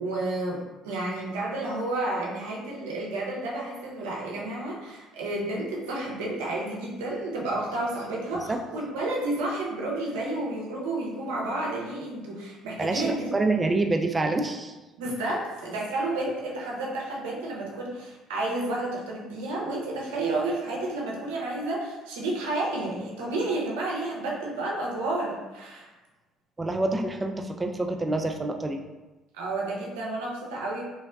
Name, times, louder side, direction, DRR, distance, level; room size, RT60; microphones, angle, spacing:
voice 1, 0.0-13.3 15.0-25.9 29.3-30.8, right 2 dB, 80° right, -3 dB, 0.6 m, -31 dB
voice 2, 12.8-14.8 26.6-28.8, right 2 dB, 25° right, 4 dB, 0.4 m, -27 dB
3.3 x 2.1 x 2.3 m, 1.1 s
hypercardioid pair, 60°, 0 cm